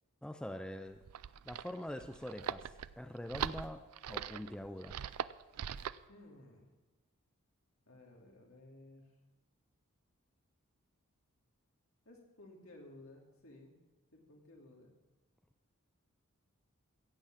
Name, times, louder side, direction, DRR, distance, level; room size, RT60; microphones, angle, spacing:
voice 1, 0.2-1.0 1.4-3.8 4.1-5.0, left 1 dB, 5° left, 7 dB, 0.4 m, -44 dB
sound 1, 0.9-6.1, right 8 dB, 85° right, 0.4 m, -41 dB
voice 2, 6.1-6.7 7.9-9.1 12.1-13.8 14.1-14.9, left 1 dB, 70° left, 0 dB, 2.8 m, -56 dB
15.5 x 7.8 x 7.3 m, 1.1 s
head